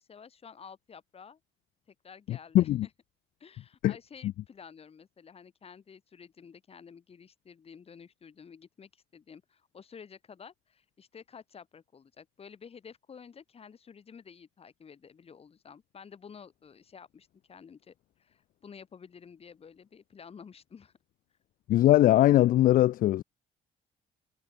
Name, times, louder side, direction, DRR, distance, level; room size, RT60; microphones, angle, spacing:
voice 1, 0.0-1.4 1.9-2.9 3.4-20.9, left 6 dB, 35° left, 4.3 m, -51 dB
voice 2, 2.3-2.9 3.8-3.9 21.7-23.2, left 14 dB, 55° left, 0.4 m, -21 dB
cardioid pair, 110°, 17 cm